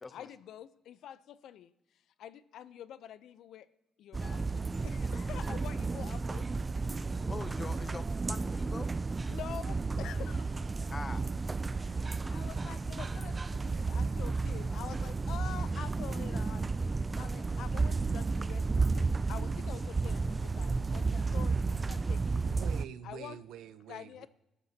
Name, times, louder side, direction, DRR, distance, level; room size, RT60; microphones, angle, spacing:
voice 1, 0.1-1.7 2.2-3.7 4.0-6.5 9.3-10.7 11.7-16.6 17.2-22.5 23.0-23.4 23.9-24.3, left 10 dB, 75° left, 0.6 m, -47 dB
sound 1, 4.1-22.8, right 4 dB, 25° right, 0.4 m, -32 dB
voice 2, 7.2-8.0 8.3-8.9 10.9-11.2, left 3 dB, 30° left, 0.8 m, -42 dB
voice 3, 22.4-24.3, right 9 dB, 85° right, 0.6 m, -45 dB
19.5 x 12.5 x 2.8 m
cardioid pair, 90°, 0 cm